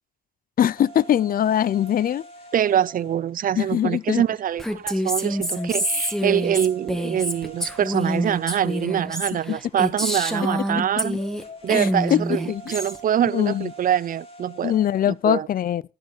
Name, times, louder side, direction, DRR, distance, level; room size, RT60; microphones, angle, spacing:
voice 1, 0.6-2.2 3.6-4.2 9.5-9.6 10.8-10.9 11.7-12.2 12.5-12.8 13.3-13.7 14.6-15.8, left 10 dB, 70° left, 0.4 m, -22 dB
sound 1, 0.8-15.2, right 2 dB, 40° left, 3.7 m, -45 dB
voice 2, 2.5-11.2 11.6-14.7 15.1-15.5, right 10 dB, 65° right, 0.4 m, -24 dB
Female speech woman speaking, 4.6-11.4 11.7-13.0, equal, 5° left, 2.0 m, -27 dB
14.5 x 6.7 x 4.4 m
cardioid pair, 50°, 15 cm